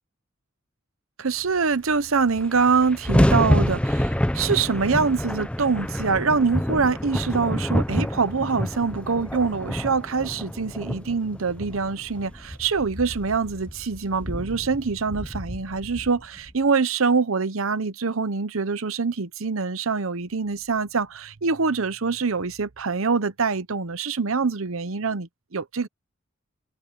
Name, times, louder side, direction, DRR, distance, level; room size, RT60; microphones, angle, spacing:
voice 1, 1.2-25.9, right 4 dB, 80° right, 0.9 m, -24 dB
sound 1, 1.9-2.0 2.2-16.5, equal, 5° left, 0.6 m, -27 dB
head